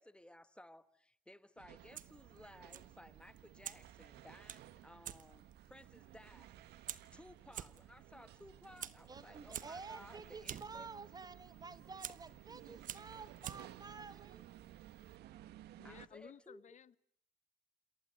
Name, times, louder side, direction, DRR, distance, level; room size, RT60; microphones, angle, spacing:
voice 1, 0.0-10.9 12.6-12.7 15.8-16.6, left 1 dB, 5° left, 13 dB, 1.3 m, -58 dB
sound 1, 1.6-16.1, right 13 dB, 75° right, 1.5 m, -57 dB
Fire, 1.8-15.2, right 10 dB, 50° right, 1.2 m, -52 dB
voice 2, 9.1-14.4, right 4 dB, 25° right, 13 dB, 1.6 m, -51 dB
voice 3, 15.8-17.0, left 8 dB, 45° left, 17 dB, 1.1 m, -56 dB
28.0 x 27.5 x 6.7 m, 0.67 s
cardioid pair, 110°, 17 cm